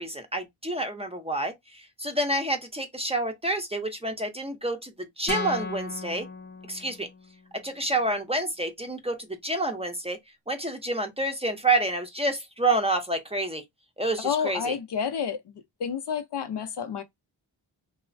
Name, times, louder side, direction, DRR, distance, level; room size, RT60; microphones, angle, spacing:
voice 1, 0.0-6.3 6.7-7.1 7.6-10.2 10.5-13.6 14.0-14.7, right 2 dB, 15° right, 0.6 m, -28 dB
sound 1, 5.3-7.4, left 3 dB, 20° left, 0.8 m, -35 dB
voice 2, 14.2-17.0, left 7 dB, 60° left, 0.6 m, -30 dB
3.0 x 2.0 x 2.5 m
cardioid pair, 50°, 48 cm